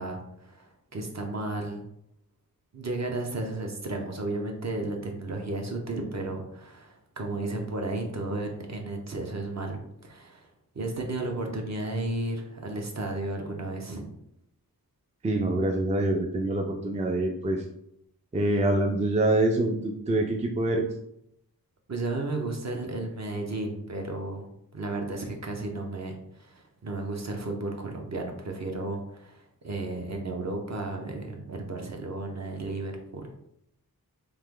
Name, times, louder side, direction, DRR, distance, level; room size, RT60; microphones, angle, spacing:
voice 1, 0.0-1.8 2.7-10.5 10.7-14.0 21.9-24.5 24.7-33.2, right 2 dB, 45° right, 2 dB, 0.7 m, -33 dB
voice 2, 15.2-17.6 18.3-20.9, right 2 dB, 20° right, 2 dB, 0.3 m, -25 dB
3.2 x 2.9 x 3.7 m, 0.76 s
wide cardioid pair, 105°, 36 cm